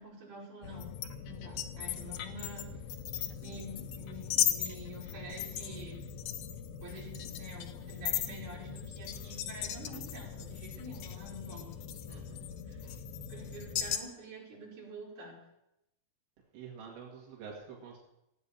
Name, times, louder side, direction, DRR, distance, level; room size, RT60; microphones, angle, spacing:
voice 1, 0.0-2.8 3.4-6.0 6.8-11.9 12.4-12.8 13.3-15.4, equal, 45° right, -5 dB, 6.4 m, -47 dB
sound 1, 0.6-14.0, left 10 dB, 75° left, 2.4 m, -38 dB
voice 2, 12.1-12.5 16.5-18.0, right 6 dB, 85° right, -2 dB, 4.4 m, -47 dB
16.5 x 8.6 x 7.3 m, 0.85 s
omnidirectional pair, 4.9 m